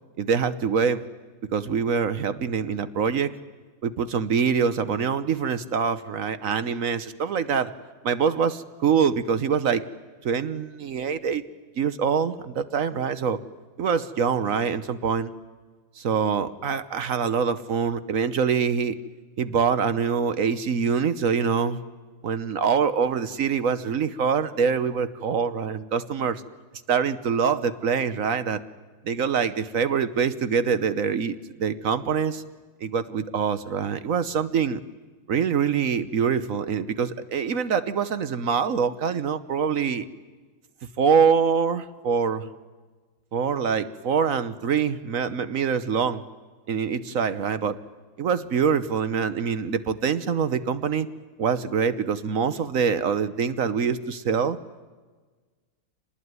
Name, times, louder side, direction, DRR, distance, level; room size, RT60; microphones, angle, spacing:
voice 1, 0.2-1.0 1.5-3.3 3.8-7.7 8.0-9.8 10.2-11.4 11.8-13.4 13.8-15.3 16.0-18.9 19.4-21.8 22.2-26.4 26.9-28.6 29.0-32.4 32.8-34.8 35.3-40.1 41.0-42.5 43.3-46.2 46.7-47.8 48.2-51.1 51.4-54.6, right 6 dB, 50° right, 13 dB, 1.0 m, -24 dB
25.5 x 20.0 x 9.6 m, 1.4 s
omnidirectional pair, 2.4 m